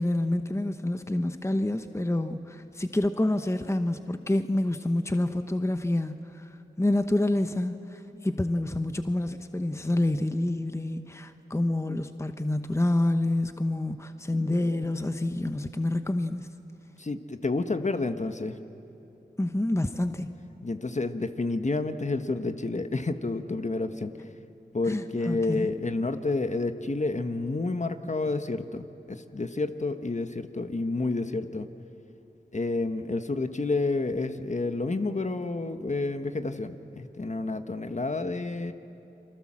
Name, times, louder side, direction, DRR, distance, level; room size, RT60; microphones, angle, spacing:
voice 1, 0.0-6.5 6.8-16.5 19.4-20.3 24.9-25.7, left 1 dB, 15° left, 9 dB, 1.0 m, -28 dB
voice 2, 17.0-18.6 20.6-24.3 24.7-31.7 32.5-38.7, left 3 dB, 40° left, 8 dB, 1.3 m, -30 dB
29.5 x 23.5 x 7.6 m, 2.9 s
cardioid pair, 45°, 18 cm